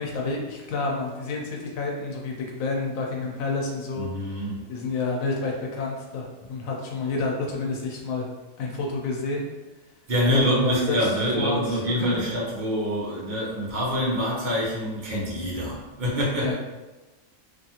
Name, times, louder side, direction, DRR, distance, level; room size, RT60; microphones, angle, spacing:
voice 1, 0.0-4.1 4.7-8.3 8.6-9.4 10.3-10.9 11.4-12.2 16.4-16.5, left 3 dB, 90° left, -1 dB, 1.0 m, -29 dB
voice 2, 3.9-4.6 10.1-16.5, equal, 45° right, -5 dB, 0.8 m, -25 dB
2.6 x 2.4 x 2.8 m, 1.1 s
omnidirectional pair, 1.4 m